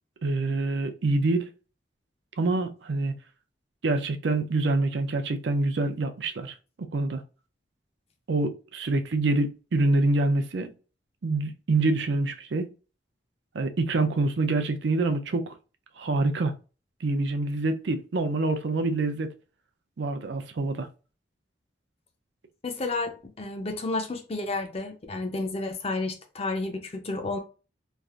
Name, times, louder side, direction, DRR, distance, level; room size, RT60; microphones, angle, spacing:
voice 1, 0.2-1.5 2.4-3.1 3.8-6.5 6.9-7.2 8.3-10.7 11.2-12.7 13.5-15.5 16.0-16.5 17.0-19.3 20.0-20.9, right 2 dB, 75° right, 0.5 m, -26 dB
voice 2, 22.6-27.4, left 3 dB, 35° left, 0.5 m, -31 dB
3.2 x 2.4 x 2.4 m
head